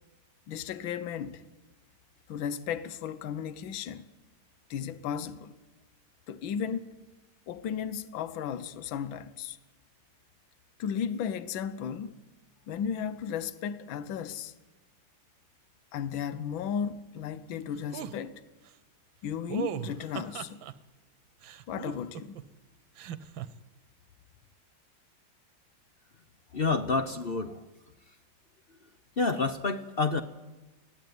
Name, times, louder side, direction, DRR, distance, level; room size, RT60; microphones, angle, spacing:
voice 1, 0.5-1.5 2.3-4.1 4.7-5.5 6.3-7.0 7.5-9.6 10.8-12.2 12.7-14.5 15.9-18.4 19.2-20.6 21.7-22.4, left 7 dB, 75° left, 1.7 m, -35 dB
sound 1, 17.9-18.1 19.5-20.7 21.4-22.4 23.0-23.5, right 9 dB, 70° right, 1.6 m, -37 dB
voice 2, 26.5-27.6 29.2-30.2, left 4 dB, 50° left, 0.7 m, -28 dB
21.0 x 15.5 x 9.5 m
omnidirectional pair, 2.2 m